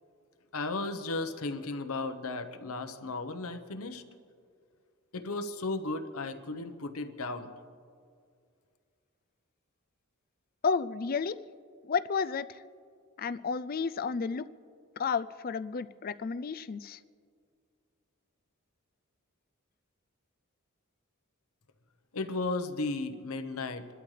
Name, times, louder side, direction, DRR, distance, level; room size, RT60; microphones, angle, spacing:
voice 1, 0.5-4.0 5.1-7.5 22.1-23.9, left 3 dB, 80° left, 7 dB, 1.0 m, -35 dB
voice 2, 10.6-11.4 11.8-12.6 13.2-14.5 15.0-17.0, left 5 dB, 40° left, 14 dB, 0.4 m, -31 dB
27.5 x 12.5 x 3.3 m, 2.2 s
head